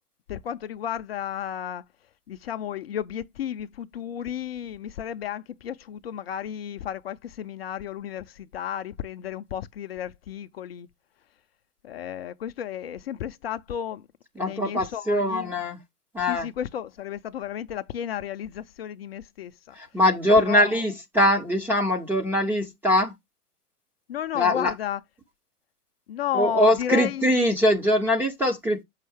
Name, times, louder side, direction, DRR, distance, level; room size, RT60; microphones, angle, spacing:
voice 1, 0.3-1.8 2.3-10.9 11.8-14.0 14.4-15.5 16.3-19.8 20.4-20.8 24.1-25.0 26.1-27.3, left 9 dB, 40° left, 0.6 m, -33 dB
voice 2, 14.4-15.8 16.1-16.5 19.7-23.2 24.3-24.7 26.3-28.8, left 1 dB, 5° right, 0.6 m, -22 dB
7.4 x 5.6 x 3.4 m
hypercardioid pair, 130°, 46 cm